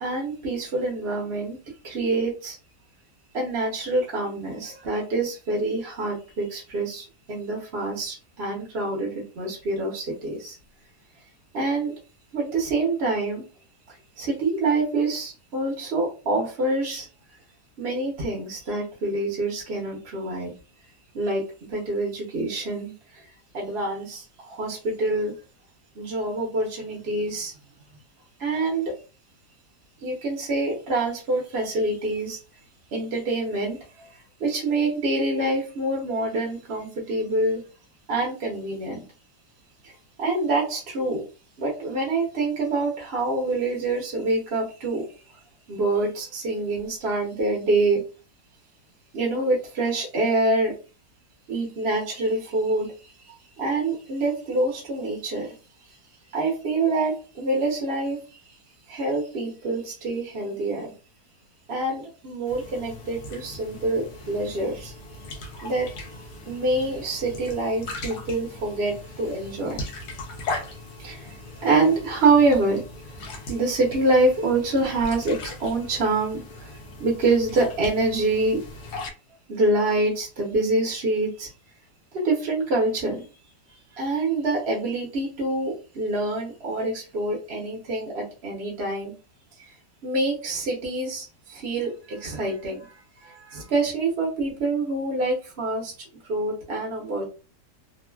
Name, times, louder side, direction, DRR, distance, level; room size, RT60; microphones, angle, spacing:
voice 1, 0.0-1.6 1.8-2.6 3.3-10.6 11.5-11.9 12.3-13.4 13.9-17.1 17.8-20.5 21.1-21.4 21.7-23.3 23.5-25.3 25.9-27.5 28.4-28.9 30.0-32.4 32.9-34.1 34.4-37.6 38.1-39.0 39.8-39.9 40.2-41.2 41.6-45.0 45.7-48.0 49.1-50.7 51.5-55.5 56.3-58.6 58.9-60.9 61.7-64.9 65.6-69.8 71.0-72.8 73.5-78.6 79.5-81.5 82.1-83.2 83.9-89.1 89.6-89.7 90.0-92.9 93.2-95.9 96.3-97.2, right 2 dB, 50° right, -2 dB, 0.8 m, -26 dB
sound 1, 62.4-79.1, left 2 dB, 80° left, 1.2 m, -39 dB
3.1 x 2.3 x 2.2 m, 0.33 s
omnidirectional pair, 1.8 m